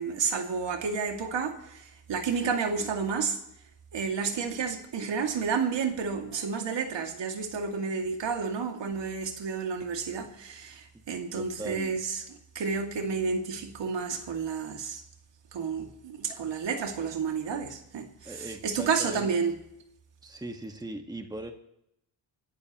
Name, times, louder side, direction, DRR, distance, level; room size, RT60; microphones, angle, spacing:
voice 1, 0.0-3.4 3.9-15.0 15.5-19.6, right 5 dB, 60° right, 2.5 m, -31 dB
voice 2, 11.3-12.0 18.2-19.3 20.2-21.5, right 1 dB, 10° right, 1.7 m, -39 dB
24.5 x 14.0 x 3.1 m
cardioid pair, 80°, 49 cm